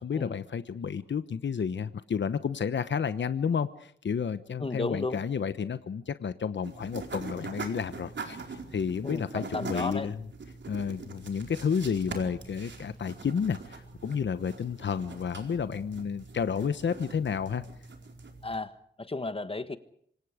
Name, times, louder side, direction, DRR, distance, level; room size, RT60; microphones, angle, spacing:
voice 1, 0.0-10.2 10.7-17.6, left 6 dB, 70° left, 12 dB, 1.0 m, -31 dB
voice 2, 4.6-5.2 9.0-10.1 18.4-19.8, left 3 dB, 30° left, 12 dB, 1.3 m, -34 dB
sound 1, 6.6-18.6, right 4 dB, 70° right, 4.6 m, -43 dB
26.5 x 26.5 x 5.0 m, 0.64 s
wide cardioid pair, 130°, 19 cm